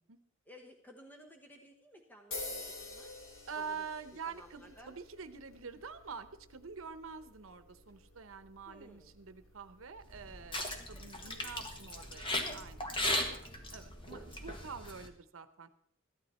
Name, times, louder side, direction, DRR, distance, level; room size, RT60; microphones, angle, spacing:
voice 1, 0.5-3.1 3.6-3.8 4.2-4.9 8.6-9.1 10.8-11.7 13.3-13.6, equal, 10° left, 3 dB, 1.1 m, -57 dB
sound 1, 2.3-10.4, left 2 dB, 75° left, 2.9 m, -49 dB
voice 2, 3.5-10.6 10.9-15.7, right 5 dB, 85° right, 11 dB, 0.8 m, -46 dB
sound 2, 10.0-15.1, left 1 dB, 25° left, 1.5 m, -38 dB
14.5 x 11.5 x 4.3 m, 0.66 s
head